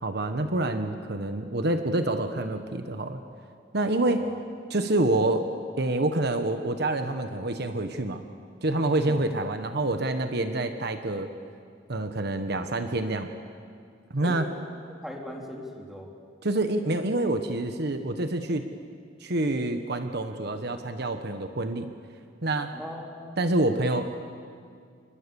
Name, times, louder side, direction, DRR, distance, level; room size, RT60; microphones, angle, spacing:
voice 1, 0.0-3.2 3.7-4.2 4.7-5.5 5.8-8.2 8.6-11.3 11.9-13.3 14.1-14.4 16.4-18.6 19.2-21.9 22.4-22.8 23.4-24.1, right 2 dB, 60° right, 7 dB, 1.3 m, -27 dB
voice 2, 14.9-16.1 22.7-23.4, equal, ahead, 0 dB, 3.4 m, -39 dB
29.0 x 25.0 x 7.1 m, 2.2 s
head